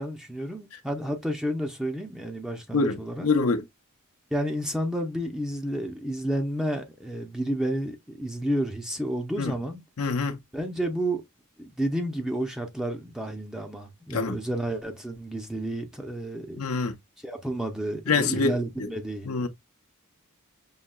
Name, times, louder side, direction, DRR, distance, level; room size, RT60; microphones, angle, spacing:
voice 1, 0.0-3.3 4.3-9.8 10.5-11.2 11.6-16.6 17.2-19.5, right 1 dB, 5° right, 0.6 m, -31 dB
voice 2, 2.7-3.6 9.4-9.5 10.0-10.4 14.1-14.3 16.6-16.9 18.1-18.9 19.2-19.5, left 4 dB, 80° left, 0.7 m, -25 dB
5.6 x 2.8 x 2.2 m
head